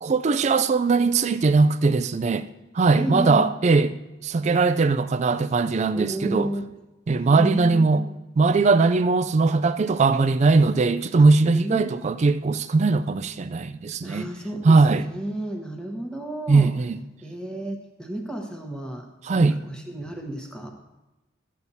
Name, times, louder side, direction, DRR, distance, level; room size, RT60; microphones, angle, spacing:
voice 1, 0.0-2.4 2.7-3.9 4.2-6.5 7.1-8.0 8.4-14.3 14.6-15.0 16.5-17.0 19.2-19.6, right 3 dB, 35° right, 0.3 m, -20 dB
voice 2, 2.9-3.5 5.9-6.7 7.2-8.1 11.2-11.3 11.5-12.1 14.0-16.7 17.2-19.1 19.3-20.7, right 1 dB, 5° left, 1.0 m, -32 dB
13.0 x 8.4 x 2.7 m
head